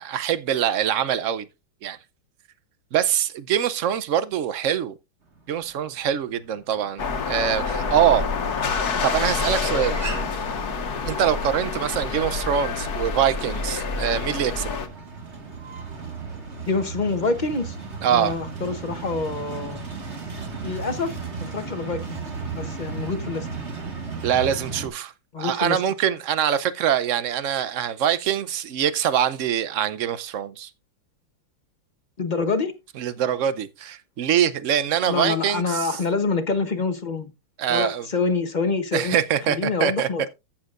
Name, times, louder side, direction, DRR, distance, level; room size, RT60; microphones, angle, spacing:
voice 1, 0.0-1.4 1.8-2.0 2.9-4.9 5.5-8.2 9.0-10.0 11.0-14.7 18.0-18.4 24.2-25.1 25.4-30.7 33.0-35.9 37.6-38.1 38.9-40.1, right 9 dB, 65° right, 0.7 m, -24 dB
sound 1, 5.3-24.9, right 4 dB, 35° right, 2.0 m, -36 dB
sound 2, 7.0-14.9, left 5 dB, 55° left, 1.6 m, -27 dB
voice 2, 16.7-17.8 18.1-19.8 20.6-22.2 22.5-23.5 25.3-25.8 32.2-32.7 35.1-37.3 37.7-39.1 39.5-40.2, left 4 dB, 35° left, 0.8 m, -26 dB
14.5 x 7.3 x 2.5 m
omnidirectional pair, 2.1 m